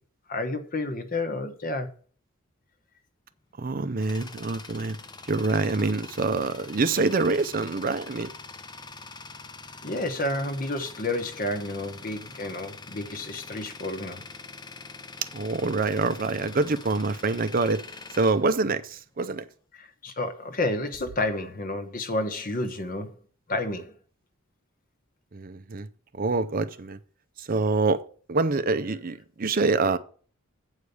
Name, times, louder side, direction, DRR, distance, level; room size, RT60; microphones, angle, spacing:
voice 1, 0.3-1.9 9.8-14.2 19.7-23.2 23.5-23.9, left 2 dB, 40° left, 1.1 m, -30 dB
Tools, 3.5-19.3, left 4 dB, 20° left, 0.6 m, -44 dB
voice 2, 3.6-5.0 5.3-8.3 15.3-17.8 18.2-19.4 25.3-25.9 26.2-27.0 27.4-28.0 28.3-30.0, right 3 dB, 40° right, 0.5 m, -25 dB
8.1 x 4.9 x 6.8 m
head